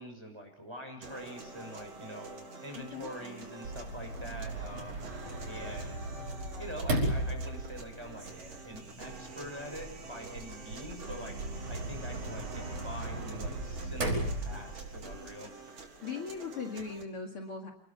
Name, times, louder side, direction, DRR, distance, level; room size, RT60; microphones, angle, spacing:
voice 1, 0.0-5.0 5.4-6.0 6.6-11.3 11.7-15.5, equal, 10° right, 3 dB, 6.2 m, -45 dB
sound 1, 1.0-17.0, right 3 dB, 55° right, 4.7 m, -47 dB
voice 2, 2.8-3.1 16.0-17.7, left 5 dB, 50° left, 2 dB, 2.9 m, -39 dB
Sliding door, 3.6-15.2, right 1 dB, 80° right, 6.8 m, -37 dB
28.0 x 21.0 x 7.2 m, 0.68 s
omnidirectional pair, 3.3 m